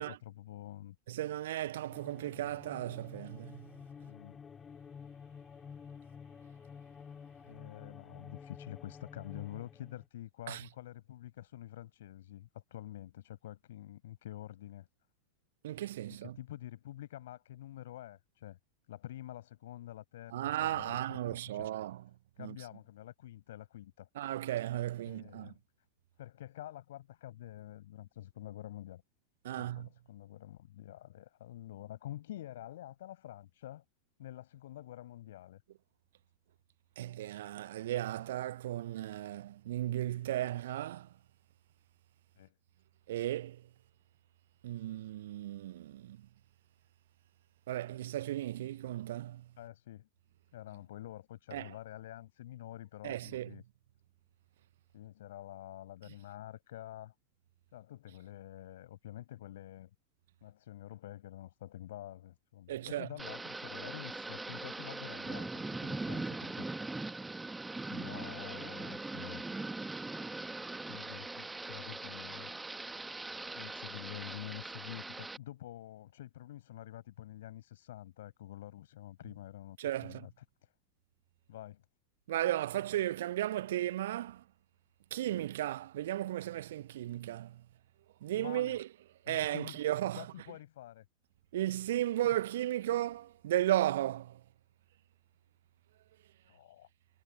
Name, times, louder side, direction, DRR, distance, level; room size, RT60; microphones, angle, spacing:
voice 1, 0.0-1.0 4.0-4.4 7.5-14.9 16.2-18.6 18.9-20.3 20.6-21.7 22.4-24.1 25.1-25.6 26.2-29.0 29.5-33.8 34.2-35.6 42.4-42.5 49.6-50.1 50.5-53.6 54.9-57.1 57.7-59.9 60.4-66.6 67.8-69.5 70.9-72.5 73.5-79.8 80.0-80.3 80.6-80.7 81.5-81.8 85.3-85.4 88.3-88.8 89.3-89.8 90.2-91.0 92.2-92.4 96.5-96.9, left 13 dB, 55° left, 6.0 m, -48 dB
voice 2, 1.1-3.7 10.5-10.6 15.6-16.4 20.3-22.0 22.4-22.6 24.2-25.5 29.4-29.9 37.0-41.1 43.1-43.6 44.6-46.2 47.7-49.5 51.5-51.7 53.0-53.5 62.7-63.1 79.8-80.3 82.3-84.4 85.1-87.6 88.2-88.9 89.3-90.3 91.5-94.4, right 13 dB, 55° right, 0.7 m, -35 dB
sound 1, 1.9-10.1, left 6 dB, 20° left, 3.3 m, -51 dB
Thunder / Rain, 63.2-75.4, right 2 dB, 10° right, 1.5 m, -41 dB
figure-of-eight pair, 90°, 0 cm